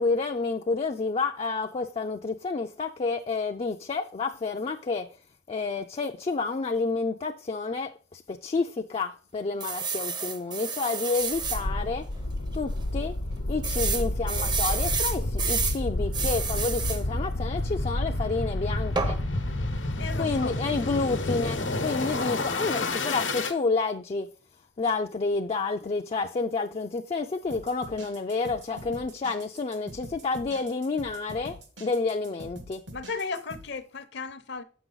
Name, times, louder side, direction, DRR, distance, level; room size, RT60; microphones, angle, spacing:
voice 1, 0.0-5.1 5.5-12.1 12.5-13.1 13.5-19.2 20.2-24.3 24.8-32.8, left 4 dB, 35° left, 0.4 m, -29 dB
sound 1, 9.6-11.6 12.2-12.3 12.5-12.6 13.6-15.8 16.1-17.0 19.0-19.2, right 5 dB, 25° right, 0.6 m, -30 dB
sound 2, 11.3-23.5, left 2 dB, 90° left, 1.0 m, -30 dB
voice 2, 19.8-20.6 32.9-34.6, left 4 dB, 65° left, 0.8 m, -35 dB
sound 3, 27.4-33.6, equal, 75° right, 1.6 m, -44 dB
8.1 x 6.0 x 3.9 m
head